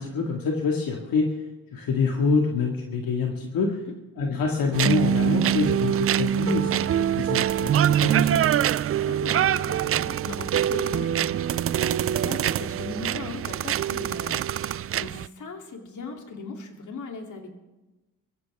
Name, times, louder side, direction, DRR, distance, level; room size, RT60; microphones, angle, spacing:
voice 1, 0.0-1.4 1.7-3.8 4.2-8.4 8.7-8.8, left 4 dB, 75° left, 0 dB, 2.1 m, -26 dB
sound 1, 4.7-15.3, right 10 dB, 40° right, 0.4 m, -24 dB
voice 2, 9.0-17.5, left 3 dB, 55° left, 2 dB, 3.1 m, -38 dB
24.0 x 15.0 x 3.6 m, 1.1 s
cardioid pair, 70°, 35 cm